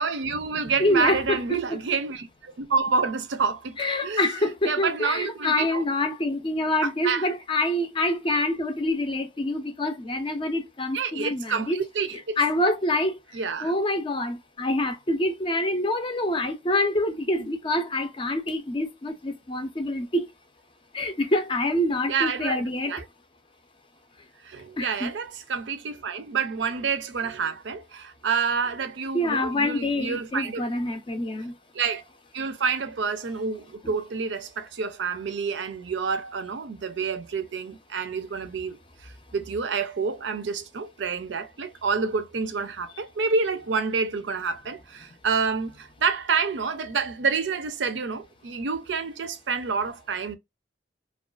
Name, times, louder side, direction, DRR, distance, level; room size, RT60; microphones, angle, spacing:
voice 1, 0.0-3.8 4.0-4.3 4.6-5.8 6.8-7.3 10.9-12.4 13.3-13.7 17.4-17.5 22.1-23.1 24.4-30.7 31.7-32.0 32.3-50.4, right 5 dB, 75° right, 0.5 m, -28 dB
voice 2, 0.8-1.4 3.8-11.8 12.4-13.1 13.6-20.3 20.9-22.9 24.8-25.1 29.1-31.5 33.8-33.9, left 1 dB, 30° left, 0.5 m, -26 dB
2.4 x 2.3 x 2.3 m
head